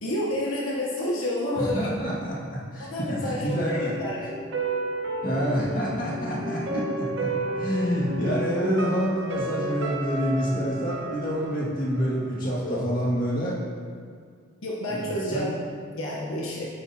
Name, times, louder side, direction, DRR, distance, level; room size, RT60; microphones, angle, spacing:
voice 1, 0.0-1.9 2.9-4.3 12.6-12.8 14.6-15.5 15.9-16.7, left 1 dB, 80° left, -4 dB, 1.1 m, -29 dB
voice 2, 1.6-3.9 5.2-13.6 14.9-15.5, equal, 40° left, -6 dB, 2.0 m, -27 dB
sound 1, 3.7-12.7 13.0-13.1, right 2 dB, 55° right, 1.1 m, -32 dB
8.8 x 8.7 x 2.8 m, 2.1 s
head